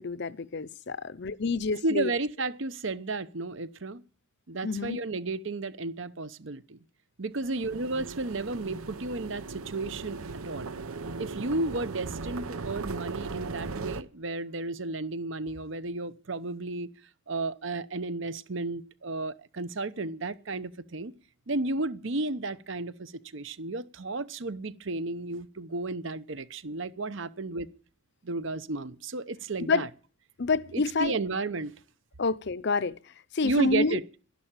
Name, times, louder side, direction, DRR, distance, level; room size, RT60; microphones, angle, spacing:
voice 1, 0.0-2.1 4.6-5.0 29.7-29.9 30.4-31.1 32.2-33.0 33.3-34.0, left 4 dB, 55° left, 0.6 m, -28 dB
voice 2, 1.8-4.0 4.5-6.8 7.2-10.2 10.4-10.7 11.2-16.9 17.3-21.1 21.5-27.7 28.2-29.9 30.7-31.7 33.4-34.0, right 2 dB, 60° right, 0.9 m, -33 dB
sound 1, 7.4-14.0, right 3 dB, 85° right, 1.0 m, -38 dB
12.0 x 11.5 x 8.9 m
head